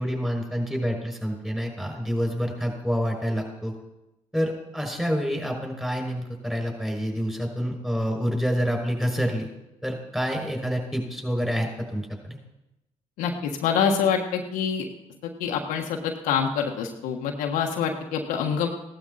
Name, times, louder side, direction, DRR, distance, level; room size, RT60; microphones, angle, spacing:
voice 1, 0.0-3.7 4.3-9.5 9.8-12.4, equal, 5° right, 2 dB, 5.9 m, -27 dB
voice 2, 13.2-14.8 15.2-18.7, left 7 dB, 85° left, 2 dB, 1.4 m, -26 dB
16.5 x 12.0 x 4.2 m, 0.94 s
supercardioid pair, 65°, 14 cm